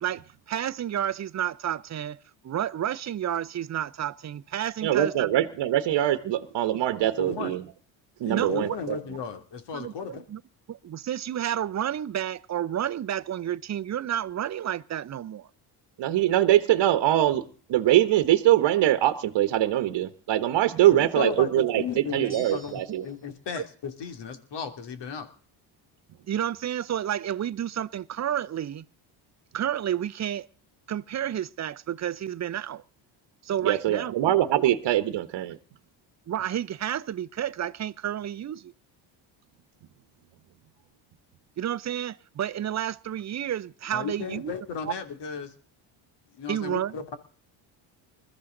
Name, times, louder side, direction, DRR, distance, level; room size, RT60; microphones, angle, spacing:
voice 1, 0.0-5.3 8.3-8.8 9.7-10.4 10.7-15.5 23.6-23.7 26.3-28.9 29.5-30.5 30.9-32.8 33.4-34.1 36.3-38.7 41.6-44.5 44.9-45.0 46.5-47.0, right 10 dB, 35° right, 0.7 m, -31 dB
voice 2, 4.8-7.6 8.2-9.0 16.0-23.0 33.6-35.6, right 13 dB, 60° right, 1.2 m, -23 dB
voice 3, 7.2-7.5 8.2-10.2 20.9-25.3 43.9-45.5 46.4-47.2, left 6 dB, 60° left, 2.8 m, -35 dB
sound 1, 22.3-23.3, left 2 dB, 25° left, 2.3 m, -48 dB
21.0 x 13.5 x 3.9 m
cardioid pair, 95°, 47 cm